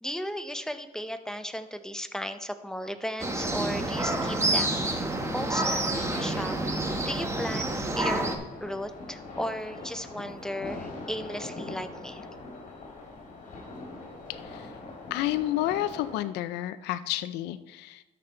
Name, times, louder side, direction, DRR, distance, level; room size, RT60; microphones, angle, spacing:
voice 1, 0.0-4.9 5.3-6.6 7.1-8.3 8.6-12.2, equal, 5° left, 9 dB, 0.6 m, -35 dB
sound 1, 3.2-8.4, right 1 dB, 15° right, 1.2 m, -28 dB
Acoustic guitar / Strum, 6.1-9.4, right 4 dB, 45° right, 3.0 m, -43 dB
sound 2, 8.5-16.2, left 2 dB, 50° left, 3.1 m, -42 dB
voice 2, 14.3-14.8 15.1-18.0, left 14 dB, 85° left, 12 dB, 0.5 m, -30 dB
12.5 x 5.3 x 4.3 m, 1.0 s
cardioid pair, 110°, 17 cm